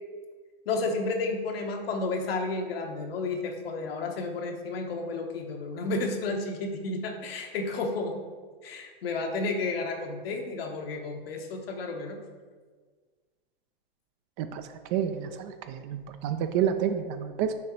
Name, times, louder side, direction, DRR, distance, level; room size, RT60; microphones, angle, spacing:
voice 1, 0.7-8.2 8.6-12.2, left 3 dB, 70° left, 3 dB, 1.1 m, -32 dB
voice 2, 14.4-17.5, right 9 dB, 35° right, 9 dB, 0.4 m, -29 dB
6.3 x 3.8 x 4.5 m, 1.5 s
hypercardioid pair, 125°, 30 cm